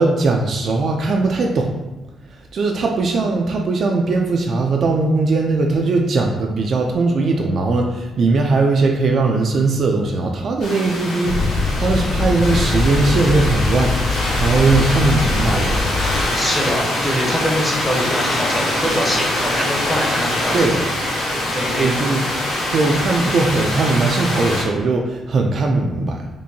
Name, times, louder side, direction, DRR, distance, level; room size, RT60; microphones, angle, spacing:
voice 1, 0.0-1.7 2.5-15.8 20.5-20.8 21.8-22.2 22.7-26.3, right 3 dB, 45° right, 2 dB, 0.3 m, -19 dB
sound 1, 10.6-24.6, left 1 dB, 80° left, 1.2 m, -23 dB
Inside a Nissan Micra, 11.2-16.3, left 3 dB, 40° left, 0.3 m, -22 dB
voice 2, 16.3-20.8 21.5-22.1, equal, 10° left, -2 dB, 0.7 m, -24 dB
4.4 x 2.6 x 2.7 m, 1.1 s
cardioid pair, 160°, 0 cm